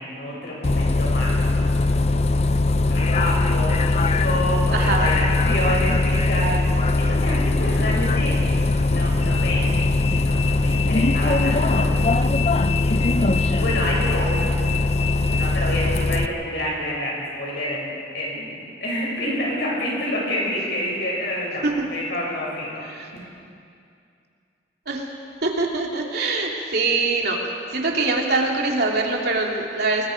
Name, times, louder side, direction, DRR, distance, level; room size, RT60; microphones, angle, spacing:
voice 1, 0.0-8.4 8.8-9.7 10.1-14.9 15.2-22.8, equal, 60° left, -3 dB, 7.3 m, -29 dB
Bus, 0.6-16.3, left 2 dB, 35° left, 0.6 m, -20 dB
voice 2, 4.7-5.1 13.6-14.1 21.6-21.7 22.9-23.1 24.9-25.1 25.4-27.4 27.7-30.1, right 3 dB, 55° right, -1 dB, 2.9 m, -23 dB
30.0 x 20.5 x 5.2 m, 2.4 s
head